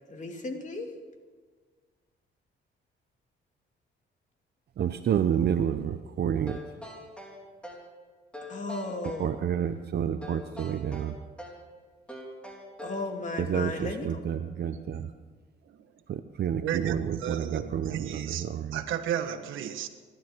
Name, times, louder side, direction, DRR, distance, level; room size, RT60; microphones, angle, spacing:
voice 1, 0.1-0.9 8.4-9.3 12.8-14.2 14.5-15.1, left 2 dB, 40° left, 4 dB, 2.6 m, -36 dB
voice 2, 4.8-6.6 9.2-11.2 13.4-15.1 16.1-18.8, right 9 dB, 55° right, 9 dB, 0.7 m, -29 dB
sound 1, 6.5-7.9 8.3-9.3 10.2-11.7 12.1-13.1, left 1 dB, 5° left, 3.8 m, -43 dB
voice 3, 16.6-19.9, right 10 dB, 85° right, 8 dB, 1.4 m, -33 dB
25.5 x 12.0 x 4.6 m, 1.5 s
cardioid pair, 90°, 20 cm